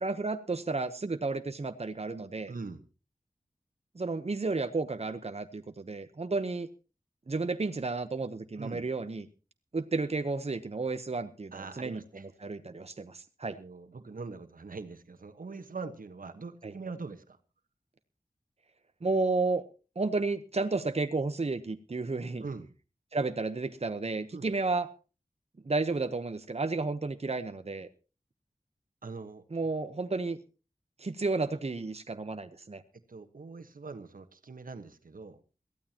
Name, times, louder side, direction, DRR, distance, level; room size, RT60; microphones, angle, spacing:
voice 1, 0.0-2.5 3.9-6.7 7.3-9.3 9.7-13.6 16.6-16.7 19.0-19.6 20.0-22.5 23.1-24.9 25.6-27.9 29.5-30.4 31.0-32.8, right 3 dB, 50° right, 9 dB, 0.9 m, -32 dB
voice 2, 2.5-2.8 8.6-8.8 11.5-12.3 13.5-17.4 22.4-22.7 24.3-24.5 29.0-29.4 33.1-35.4, right 4 dB, 85° right, 9 dB, 1.3 m, -42 dB
22.0 x 15.0 x 2.9 m, 0.34 s
wide cardioid pair, 65°, 14 cm